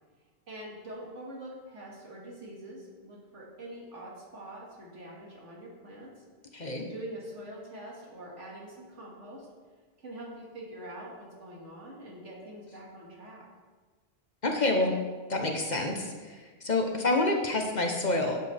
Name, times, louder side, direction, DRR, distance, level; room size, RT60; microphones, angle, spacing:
voice 1, 0.5-6.2 6.8-9.5 10.0-13.4, right 1 dB, 85° right, -3 dB, 2.4 m, -44 dB
voice 2, 6.5-6.9 14.4-14.9 15.3-18.4, left 2 dB, 40° left, 2 dB, 1.0 m, -28 dB
11.0 x 7.6 x 3.4 m, 1.4 s
omnidirectional pair, 1.2 m